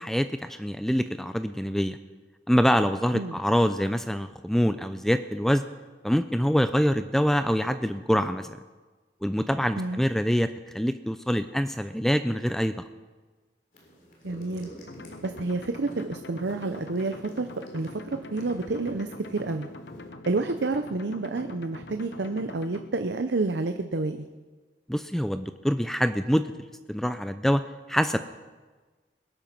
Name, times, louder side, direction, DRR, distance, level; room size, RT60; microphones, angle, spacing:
voice 1, 0.0-2.0 2.5-5.6 6.0-8.6 9.2-12.8 24.9-26.5 26.9-28.3, equal, ahead, 10 dB, 0.4 m, -25 dB
sound 1, 13.7-20.1, equal, 50° left, 3.6 m, -49 dB
voice 2, 14.2-14.7 15.2-17.5 17.7-19.7 20.3-24.3, right 3 dB, 80° right, 7 dB, 0.7 m, -29 dB
sound 2, 14.9-22.9, left 2 dB, 75° left, 0.9 m, -44 dB
21.0 x 9.1 x 5.9 m, 1.3 s
head